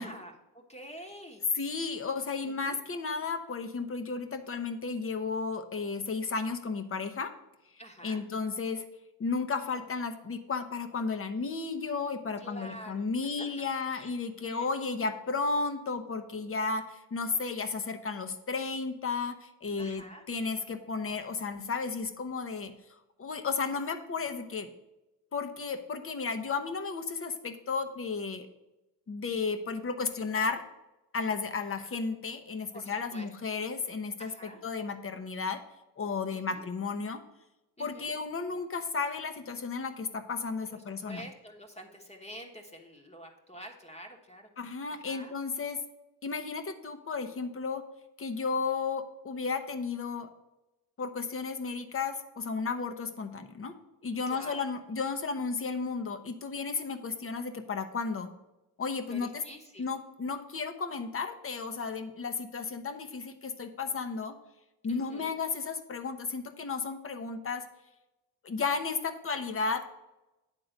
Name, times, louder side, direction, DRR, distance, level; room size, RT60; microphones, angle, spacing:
voice 1, 0.0-1.4 2.5-2.8 7.8-8.2 12.4-13.0 13.4-13.5 13.9-14.1 14.4-14.7 19.8-20.2 32.7-33.3 34.2-34.6 36.3-36.6 37.8-38.1 40.7-44.5 44.9-45.3 54.3-54.6 59.1-59.9 64.9-65.3, equal, 15° left, 2 dB, 1.2 m, -47 dB
voice 2, 1.5-7.3 8.0-8.8 9.2-22.7 23.2-24.7 25.3-28.5 29.1-30.6 31.1-35.6 36.0-37.2 37.8-41.3 44.6-45.8 46.2-47.8 48.2-50.3 51.0-53.7 54.0-58.3 58.8-59.4 59.8-64.4 64.8-67.6 68.4-69.8, left 4 dB, 35° left, 9 dB, 0.9 m, -33 dB
9.0 x 3.8 x 6.5 m, 0.97 s
cardioid pair, 90°, 39 cm